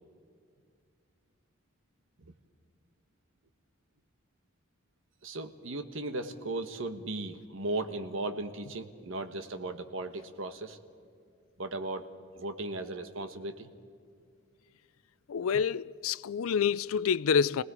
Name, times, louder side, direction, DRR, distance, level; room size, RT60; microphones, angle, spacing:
voice 1, 5.2-10.8 11.6-12.1 12.3-13.7, right 2 dB, 75° right, 1.3 m, -36 dB
voice 2, 15.3-17.6, left 6 dB, 85° left, 0.4 m, -27 dB
29.0 x 18.5 x 4.9 m
head